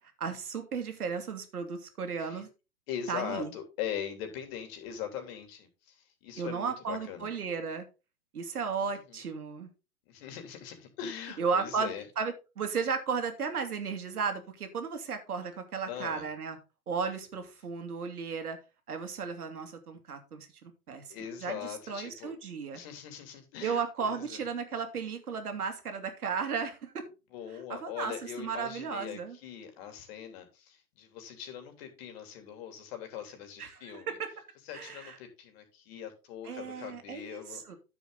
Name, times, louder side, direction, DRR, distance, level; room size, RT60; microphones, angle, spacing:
voice 1, 0.2-2.5 3.1-3.5 6.4-7.9 8.3-9.7 11.4-16.6 16.9-18.6 18.9-22.8 23.6-27.1 27.7-28.1 28.4-29.4 33.6-34.2 34.7-35.2 36.4-37.8, right 5 dB, 80° right, 7 dB, 2.6 m, -35 dB
voice 2, 2.9-7.3 8.8-9.2 10.1-12.0 15.9-16.3 21.1-22.3 22.7-24.4 27.3-34.2 34.6-37.8, left 9 dB, 40° left, 6 dB, 3.1 m, -41 dB
10.5 x 7.1 x 3.9 m, 0.29 s
hypercardioid pair, 130°, 44 cm